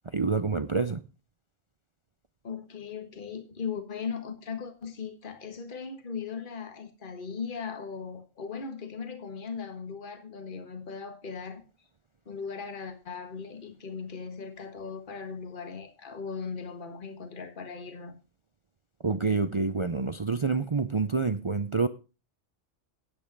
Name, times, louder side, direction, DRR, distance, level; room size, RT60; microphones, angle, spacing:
voice 1, 0.0-1.0 19.0-21.9, right 4 dB, 35° right, 11 dB, 0.5 m, -27 dB
voice 2, 2.4-11.6 12.3-18.2, left 5 dB, 40° left, 8 dB, 1.7 m, -38 dB
10.5 x 9.1 x 5.3 m, 0.31 s
omnidirectional pair, 1.3 m